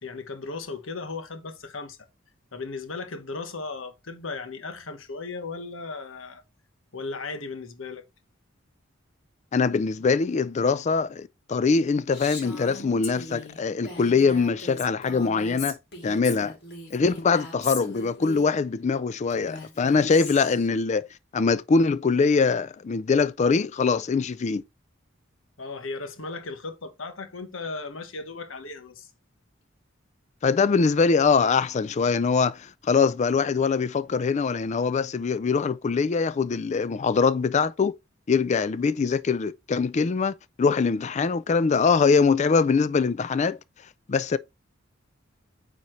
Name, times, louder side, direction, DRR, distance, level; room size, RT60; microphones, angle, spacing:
voice 1, 0.0-2.0 2.5-6.4 6.9-8.0 25.6-29.1, left 3 dB, 85° left, 1.2 m, -36 dB
voice 2, 9.5-15.8 16.0-16.6 16.9-21.1 21.3-24.6 30.4-37.9 38.3-43.6 44.1-44.4, left 5 dB, 35° left, 0.4 m, -23 dB
Female speech woman speaking, 12.1-18.5 19.3-20.7, left 3 dB, 55° left, 3.0 m, -39 dB
9.0 x 4.2 x 3.1 m
head